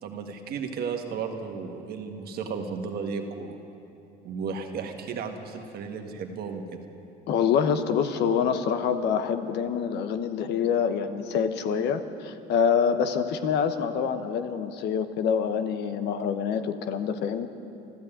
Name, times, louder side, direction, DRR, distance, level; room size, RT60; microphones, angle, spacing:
voice 1, 0.0-3.6 4.2-6.8, right 5 dB, 55° right, 4 dB, 1.6 m, -34 dB
voice 2, 7.3-17.5, left 7 dB, 65° left, 10 dB, 1.0 m, -26 dB
13.5 x 12.5 x 8.8 m, 2.7 s
cardioid pair, 110°, 19 cm